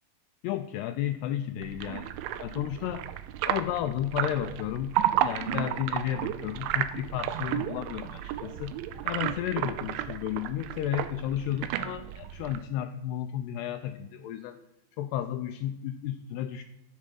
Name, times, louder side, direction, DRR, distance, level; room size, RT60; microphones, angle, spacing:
voice 1, 0.4-2.1 2.4-3.1 3.4-8.8 9.0-14.6 15.0-16.6, left 11 dB, 90° left, 9 dB, 2.3 m, -33 dB
sound 1, 1.6-12.6, right 12 dB, 85° right, 3.1 m, -32 dB
13.0 x 7.7 x 7.6 m, 0.89 s
omnidirectional pair, 5.3 m